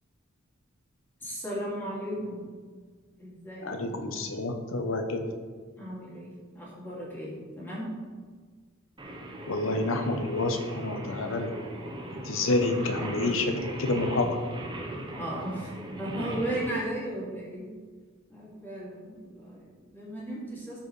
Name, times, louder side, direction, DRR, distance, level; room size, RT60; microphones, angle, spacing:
voice 1, 1.2-2.4 3.2-3.8 5.8-7.9 15.2-15.7 16.0-17.7 18.3-20.8, right 1 dB, 10° left, -7 dB, 2.4 m, -36 dB
voice 2, 3.6-5.2 9.5-11.5 12.1-14.4, left 2 dB, 75° left, 6 dB, 0.8 m, -28 dB
Singing, 9.0-16.7, right 1 dB, 25° right, 0.9 m, -39 dB
13.0 x 4.7 x 3.2 m, 1.5 s
head